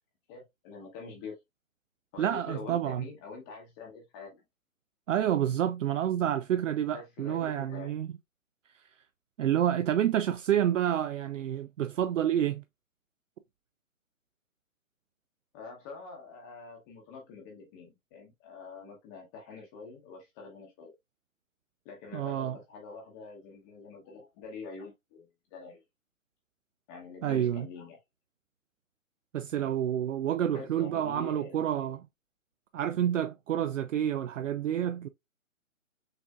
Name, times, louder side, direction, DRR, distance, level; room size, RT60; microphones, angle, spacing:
voice 1, 0.3-1.4 2.1-4.4 6.9-8.0 15.5-20.9 21.8-25.8 26.9-28.0 30.5-31.9, left 4 dB, 15° left, 0.8 m, -46 dB
voice 2, 2.2-3.0 5.1-8.1 9.4-12.6 22.1-22.6 27.2-27.7 29.3-32.0 32.7-35.1, right 10 dB, 65° right, 0.5 m, -29 dB
6.4 x 2.7 x 2.3 m
hypercardioid pair, 140°, 41 cm